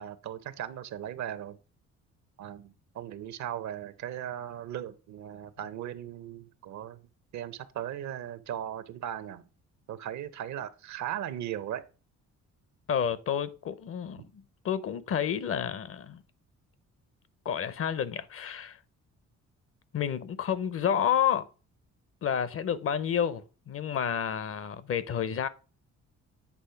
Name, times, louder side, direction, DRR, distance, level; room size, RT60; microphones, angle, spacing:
voice 1, 0.0-1.6 2.4-7.0 7.3-9.4 9.9-11.8 14.2-14.3, right 10 dB, 70° right, 0.7 m, -38 dB
voice 2, 12.9-16.2 17.4-18.8 19.9-21.5 22.2-25.5, left 8 dB, 50° left, 0.6 m, -30 dB
8.4 x 3.1 x 5.6 m
cardioid pair, 95°, 30 cm